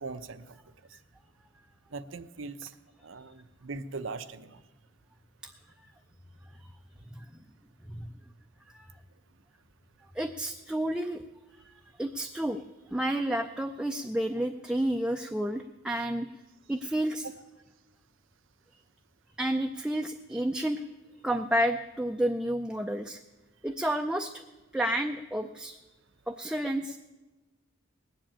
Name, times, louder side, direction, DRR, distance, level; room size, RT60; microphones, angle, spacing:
voice 1, 0.0-0.6 1.9-2.7 3.0-4.6, right 4 dB, 75° right, 12 dB, 0.7 m, -40 dB
voice 2, 10.1-11.2 11.6-12.6 12.9-16.3 16.7-17.3 19.4-20.8 21.2-23.2 23.6-24.4 24.7-25.8 26.3-27.0, right 1 dB, 5° right, 4 dB, 0.4 m, -30 dB
19.0 x 7.7 x 8.7 m, 1.2 s
head